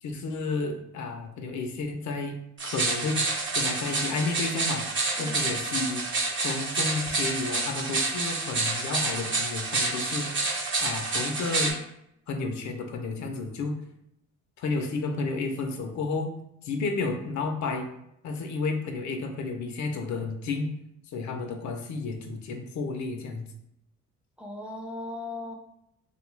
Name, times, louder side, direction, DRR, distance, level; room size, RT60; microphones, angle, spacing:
voice 1, 0.0-2.4 2.6-3.2 3.6-4.8 5.2-6.0 6.4-10.3 10.8-11.7 12.3-13.8 14.6-16.3 16.6-17.9 18.2-20.7 21.1-23.4, left 3 dB, 65° left, 5 dB, 0.6 m, -31 dB
sound 1, 2.6-11.7, right 3 dB, 40° right, 0.9 m, -28 dB
voice 2, 5.2-5.5 24.4-25.5, left 2 dB, 5° right, 0 dB, 0.5 m, -38 dB
2.8 x 2.3 x 3.1 m, 0.78 s
cardioid pair, 90°, 30 cm